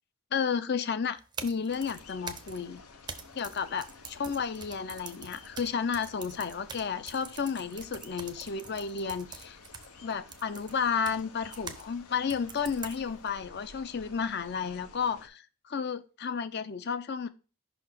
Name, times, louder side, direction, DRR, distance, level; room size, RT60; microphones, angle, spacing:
voice 1, 0.3-2.8 3.3-3.9 4.2-9.6 10.0-17.3, left 6 dB, 50° left, 13 dB, 0.5 m, -32 dB
sound 1, 1.2-11.9 12.3-13.3, right 5 dB, 20° right, 0.5 m, -45 dB
sound 2, 1.7-15.3, left 4 dB, 85° left, 0.9 m, -52 dB
5.6 x 4.2 x 4.5 m, 0.34 s
head